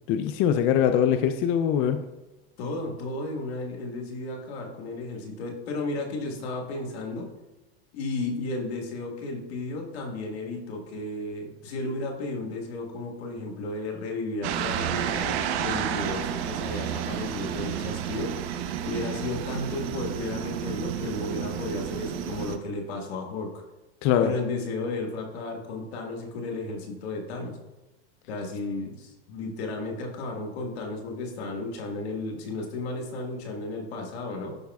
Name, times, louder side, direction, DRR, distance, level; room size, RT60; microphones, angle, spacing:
voice 1, 0.1-2.0 24.0-24.3, left 9 dB, 40° left, 8 dB, 0.4 m, -22 dB
voice 2, 2.6-7.3 7.9-18.4 18.8-23.5 24.2-27.6 28.3-34.5, left 2 dB, 80° left, 1 dB, 1.8 m, -33 dB
sound 1, 14.4-22.6, right 9 dB, 70° right, 0.8 m, -31 dB
12.0 x 5.0 x 2.3 m, 1.0 s
supercardioid pair, 125°, 32 cm